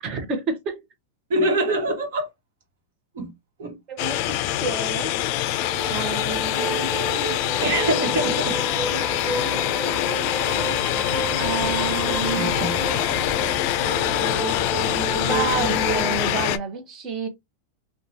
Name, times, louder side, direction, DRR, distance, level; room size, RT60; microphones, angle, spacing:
voice 1, 0.0-0.8 3.9-5.1 5.9-7.4 9.3-10.7 11.4-12.5 15.1-17.3, right 5 dB, 40° right, 0.9 m, -30 dB
voice 2, 1.3-2.3 3.1-3.3 3.6-3.8 5.9-6.1 7.6-8.6 8.9-9.4 12.3-12.7, right 1 dB, 75° right, 1.2 m, -25 dB
sound 1, 4.0-16.6, left 13 dB, 55° left, 0.3 m, -24 dB
sound 2, 5.5-16.2, right 2 dB, 15° right, 1.0 m, -31 dB
sound 3, 10.5-16.0, right 6 dB, 55° right, 0.5 m, -38 dB
2.8 x 2.3 x 2.6 m
supercardioid pair, 125°, 0 cm